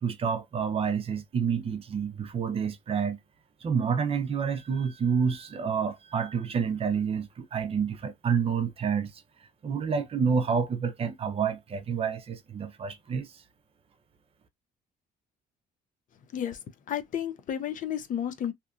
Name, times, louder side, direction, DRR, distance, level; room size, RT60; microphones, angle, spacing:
voice 1, 0.0-3.2 3.6-9.2 9.6-13.3, right 6 dB, 35° right, 0.5 m, -28 dB
voice 2, 16.9-18.5, left 9 dB, 50° left, 0.6 m, -32 dB
2.8 x 2.4 x 2.4 m
cardioid pair, 110°, 17 cm